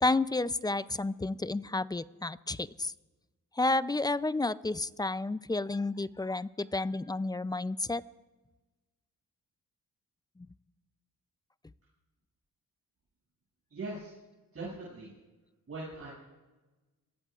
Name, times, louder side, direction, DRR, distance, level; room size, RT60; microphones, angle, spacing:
voice 1, 0.0-2.9 3.6-8.0, left 2 dB, 10° left, 16 dB, 0.4 m, -31 dB
voice 2, 13.7-14.1 14.5-15.1 15.7-16.1, right 2 dB, 45° right, -7 dB, 7.0 m, -40 dB
26.5 x 18.5 x 2.4 m, 1.2 s
cardioid pair, 90°, 34 cm